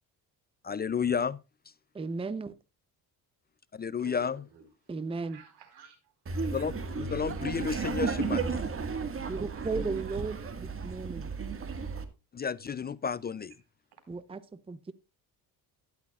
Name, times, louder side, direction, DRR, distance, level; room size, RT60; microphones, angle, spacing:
voice 1, 0.6-1.4 3.7-4.4 6.4-8.6 12.3-13.5, left 6 dB, 25° left, 0.4 m, -32 dB
voice 2, 1.9-2.5 4.9-5.4 9.3-11.3 14.1-14.9, right 4 dB, 15° right, 0.7 m, -35 dB
voice 3, 4.0-4.6 5.1-6.0 6.3-6.7 7.1-7.7 9.3-9.9 10.3-10.5, right 6 dB, 85° right, 4.3 m, -52 dB
Laughter, 6.3-12.0, right 5 dB, 35° right, 1.8 m, -34 dB
12.5 x 11.5 x 2.4 m
cardioid pair, 135°, 38 cm